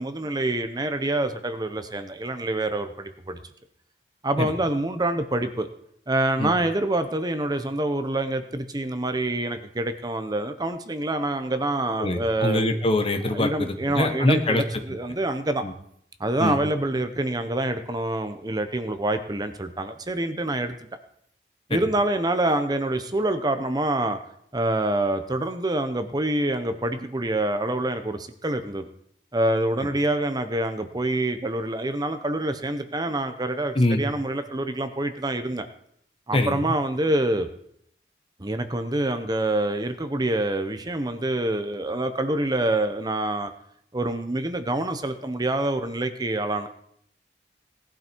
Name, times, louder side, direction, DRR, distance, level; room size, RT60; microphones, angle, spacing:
voice 1, 0.0-3.4 4.2-5.7 6.1-12.8 13.3-15.6 16.2-20.7 21.7-24.2 24.5-28.9 29.3-35.7 36.3-37.5 38.4-43.5 43.9-46.7, right 1 dB, 25° right, 9 dB, 0.9 m, -26 dB
voice 2, 12.0-14.6 15.6-15.7 16.4-16.6 21.7-21.8 33.7-34.0 36.3-36.6, left 1 dB, 35° left, 7 dB, 1.3 m, -23 dB
18.5 x 11.5 x 4.6 m, 0.71 s
head